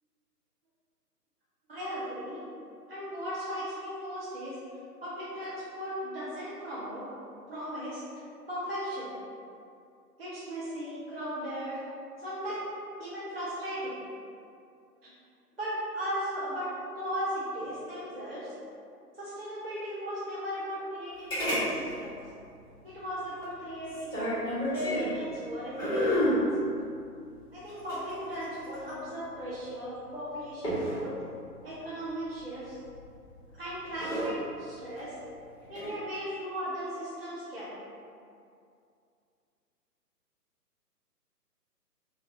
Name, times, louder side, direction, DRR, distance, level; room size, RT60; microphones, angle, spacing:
voice 1, 1.7-2.4 2.9-4.5 5.0-7.1 7.5-8.0 8.5-9.2 10.2-11.8 12.2-12.7 13.0-13.9 15.0-15.1 15.6-16.7 17.0-18.5 19.1-22.2 22.8-24.3 24.7-26.5 27.5-31.1 31.6-32.8 33.5-35.1 35.7-37.8, equal, 40° right, -9 dB, 0.5 m, -37 dB
sound 1, 21.3-21.7 21.9-22.0 23.9-25.2 25.8-26.4 27.7-28.9 30.6-31.0 32.9-33.2 33.8-34.3 35.6-35.9, equal, 20° left, 1.2 m, -30 dB
3.2 x 2.3 x 2.7 m, 2.4 s
figure-of-eight pair, 140°, 48 cm